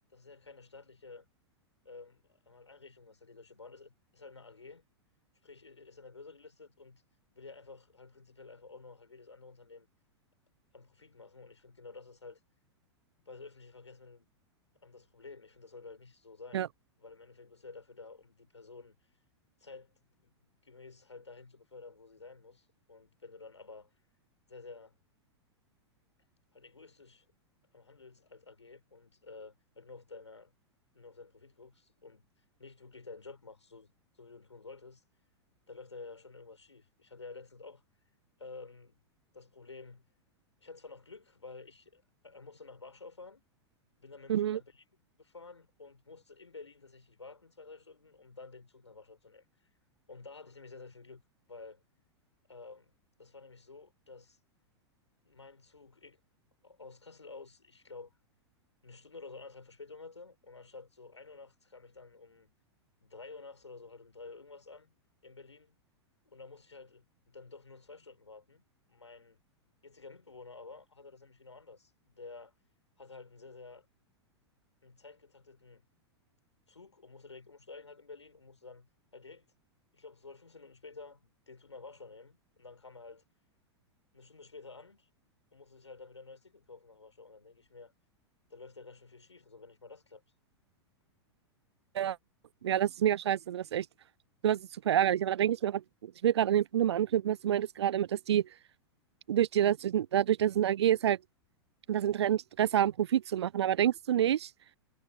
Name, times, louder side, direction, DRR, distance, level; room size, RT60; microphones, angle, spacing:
voice 1, 0.1-1.3 1.8-4.9 5.4-7.0 7.3-9.9 10.7-12.4 13.2-14.3 14.8-16.7 17.0-19.0 19.6-19.9 20.2-23.9 24.4-25.0 26.5-27.3 27.7-30.5 30.9-32.3 32.6-33.9 34.2-35.0 35.7-37.8 38.4-39.0 39.3-40.1 40.6-43.4 44.0-44.8 45.2-49.7 50.1-51.2 51.5-51.8 52.5-54.4 55.2-56.2 56.6-58.2 58.8-62.5 63.0-64.9 65.2-65.8 66.2-68.6 68.9-69.4 69.8-72.5 73.0-73.9 74.8-75.8 76.7-79.4 79.9-83.2 84.1-85.1 85.5-87.9 88.5-90.2, left 4 dB, 85° left, 6.5 m, -51 dB
voice 2, 44.3-44.6 91.9-92.2 92.6-93.9 94.4-98.4 99.3-101.2 101.9-104.5, right 10 dB, 70° right, 0.6 m, -28 dB
figure-of-eight pair, 100°, 14 cm